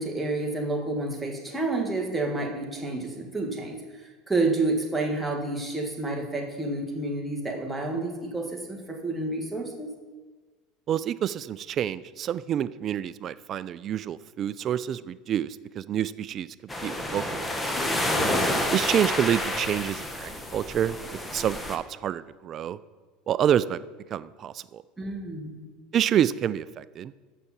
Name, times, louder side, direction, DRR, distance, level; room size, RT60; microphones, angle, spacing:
voice 1, 0.0-3.8 4.3-9.9 17.8-18.4 25.0-25.6, right 2 dB, 10° right, 0 dB, 1.6 m, -29 dB
voice 2, 10.9-16.5 16.8-17.5 18.7-21.0 21.3-22.8 23.3-23.8 24.1-24.8 25.9-27.1, right 10 dB, 40° right, 16 dB, 0.3 m, -27 dB
sound 1, 16.7-21.8, left 1 dB, 10° left, 1.1 m, -29 dB
6.8 x 5.7 x 7.3 m, 1.3 s
supercardioid pair, 105°, 0 cm